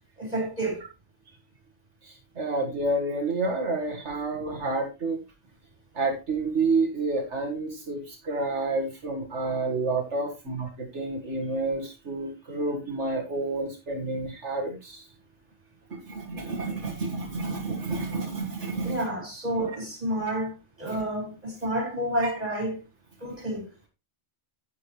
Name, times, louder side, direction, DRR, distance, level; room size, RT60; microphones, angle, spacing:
voice 1, 0.2-0.8 18.8-22.8 23.2-23.7, right 1 dB, 35° right, 4.6 m, -30 dB
voice 2, 2.0-5.2 5.9-15.1 15.9-19.0 20.9-21.0 22.2-22.3, right 3 dB, 85° right, 2.2 m, -29 dB
10.5 x 9.4 x 3.2 m
omnidirectional pair, 1.2 m